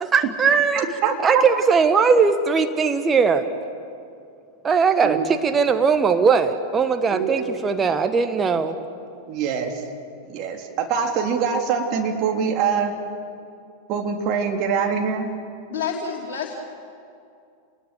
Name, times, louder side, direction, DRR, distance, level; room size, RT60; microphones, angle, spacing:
voice 1, 0.0-0.8 1.2-3.5 4.6-8.8, right 5 dB, 20° right, 8 dB, 1.2 m, -19 dB
voice 2, 0.8-1.2 5.0-5.3 7.1-7.4 8.5-8.6 9.3-9.7 10.3-13.0 13.9-15.3, right 6 dB, 40° right, 2 dB, 3.2 m, -24 dB
voice 3, 15.7-16.6, left 6 dB, 50° left, -2 dB, 3.1 m, -28 dB
29.5 x 20.5 x 6.9 m, 2.4 s
figure-of-eight pair, 90°, 0 cm